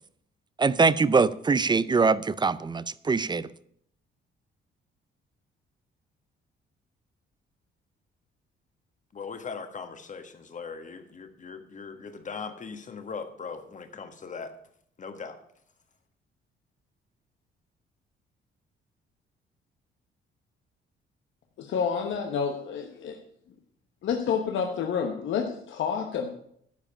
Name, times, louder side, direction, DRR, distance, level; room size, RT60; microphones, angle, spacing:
voice 1, 0.6-3.5, right 4 dB, 20° right, 18 dB, 0.5 m, -23 dB
voice 2, 9.1-14.5 15.0-15.4, left 5 dB, 40° left, 8 dB, 1.6 m, -39 dB
voice 3, 21.6-23.2 24.0-26.3, left 6 dB, 75° left, 3 dB, 1.2 m, -29 dB
12.5 x 5.0 x 8.6 m, 0.67 s
cardioid pair, 90°, 20 cm